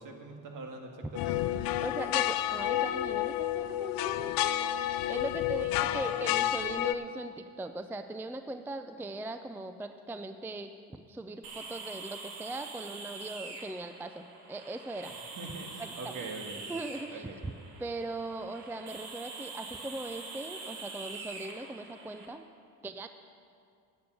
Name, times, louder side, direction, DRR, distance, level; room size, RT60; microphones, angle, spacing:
voice 1, 0.0-1.5 5.5-6.2 15.4-16.6 17.1-17.4, right 3 dB, 55° right, 3 dB, 1.9 m, -43 dB
sound 1, 1.1-6.9, left 13 dB, 60° left, 0.5 m, -30 dB
voice 2, 1.8-14.2 14.5-15.1 15.8-16.1 16.7-17.3 17.8-22.4 22.8-23.1, right 2 dB, 5° right, 8 dB, 0.4 m, -40 dB
sound 2, 11.4-22.3, right 4 dB, 75° right, 1.8 m, -44 dB
10.5 x 7.1 x 8.1 m, 2.4 s
supercardioid pair, 80°, 39 cm